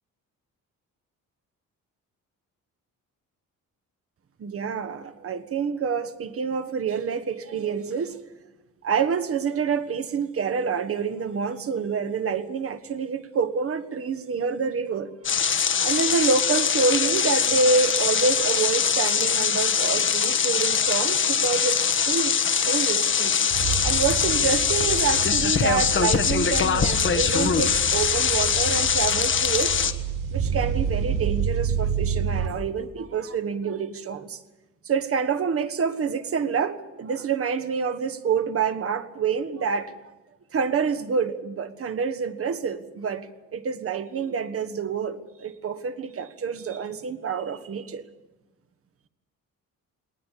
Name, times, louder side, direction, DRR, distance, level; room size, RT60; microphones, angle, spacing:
voice 1, 4.4-8.2 8.8-15.1 15.8-23.4 23.8-29.8 30.3-34.4 34.8-40.0 40.5-48.0, right 5 dB, 45° right, 12 dB, 1.5 m, -27 dB
sound 1, 15.2-29.9, left 7 dB, 40° left, 1.4 m, -23 dB
sound 2, 23.5-32.5, right 6 dB, 85° right, 6.4 m, -29 dB
20.5 x 19.5 x 8.3 m, 1.1 s
cardioid pair, 135°, 32 cm